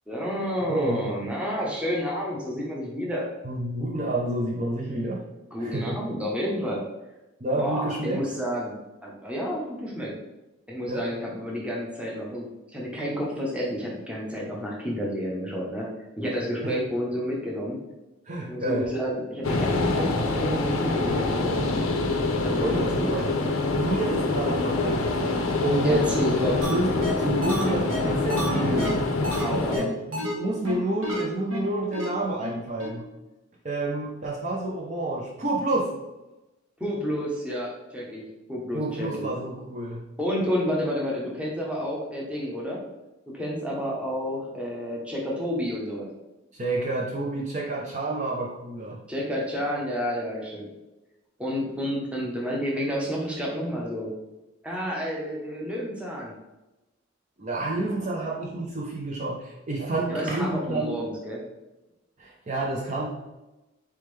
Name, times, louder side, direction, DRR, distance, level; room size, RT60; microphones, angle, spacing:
voice 1, 0.1-3.3 5.5-6.8 7.5-8.7 9.0-10.1 10.7-12.4 12.7-15.9 16.2-17.8 18.5-21.6 22.4-23.4 25.8-26.6 29.4-29.9 36.8-39.3 40.2-42.8 43.3-46.1 49.1-50.7 51.4-54.1 54.6-56.3 60.1-61.4, equal, 5° right, -3 dB, 0.8 m, -30 dB
voice 2, 0.7-1.1 3.4-5.2 5.6-5.9 7.4-8.2 10.9-11.1 16.6-16.7 18.3-18.9 22.6-23.2 23.7-29.0 29.7-33.1 33.6-35.9 38.7-40.0 46.5-49.0 57.4-61.0 62.2-63.1, right 2 dB, 35° right, -3 dB, 0.5 m, -29 dB
sound 1, 19.4-29.8, left 2 dB, 90° left, 0.6 m, -25 dB
sound 2, 26.6-26.7 27.0-27.1 27.4-29.4 29.7-29.8 30.1-30.3 30.6-30.7 31.0-31.2 31.5-31.6 31.9-32.1 32.4-32.5 32.8-32.9, equal, 75° right, 1.2 m, -31 dB
4.2 x 3.6 x 3.2 m, 1.0 s
head